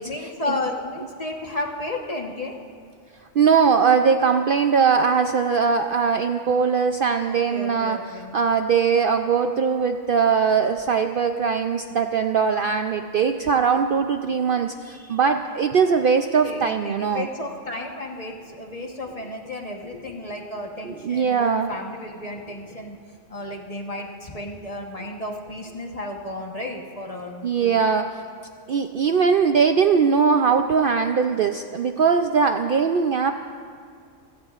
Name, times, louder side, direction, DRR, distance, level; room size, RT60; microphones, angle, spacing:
voice 1, 0.0-2.6 7.3-8.3 16.4-23.0 23.3-27.8, left 2 dB, 30° left, 1 dB, 1.2 m, -33 dB
voice 2, 3.4-8.0 8.3-17.3 20.8-21.7 27.4-28.2 28.7-33.3, right 6 dB, 60° right, 6 dB, 0.6 m, -20 dB
28.5 x 16.5 x 2.5 m, 2.2 s
omnidirectional pair, 1.3 m